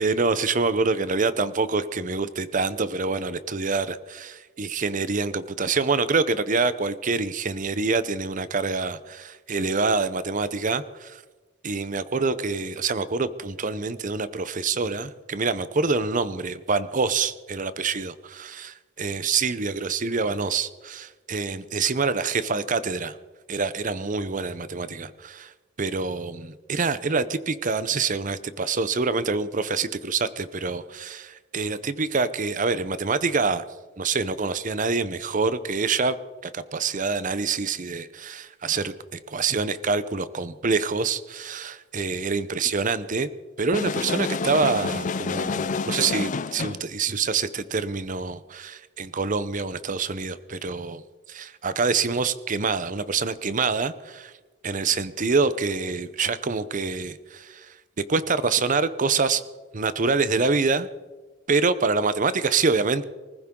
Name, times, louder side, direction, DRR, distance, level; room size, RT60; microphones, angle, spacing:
voice 1, 0.0-11.2 11.6-23.2 23.5-25.5 25.8-33.6 34.0-36.2 36.4-43.3 43.6-51.0 51.3-54.3 54.6-57.7 58.1-59.4 59.7-60.9 61.5-63.0, right 4 dB, 40° right, 15 dB, 0.7 m, -26 dB
sound 1, 43.7-46.9, left 4 dB, 40° left, 0.5 m, -28 dB
24.5 x 15.0 x 3.8 m, 1.3 s
head